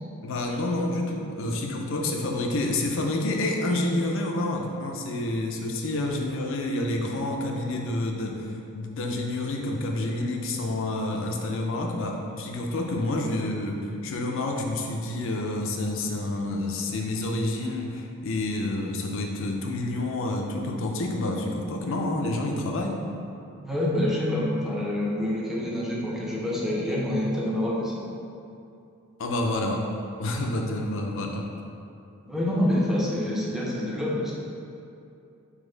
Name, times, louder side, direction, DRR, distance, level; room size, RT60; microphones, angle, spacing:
voice 1, 0.2-23.0 29.2-29.8 30.2-31.4, left 2 dB, 65° left, 2 dB, 0.5 m, -28 dB
voice 2, 23.6-27.9 32.3-34.3, left 1 dB, ahead, -5 dB, 0.6 m, -26 dB
4.0 x 2.8 x 3.8 m, 2.6 s
head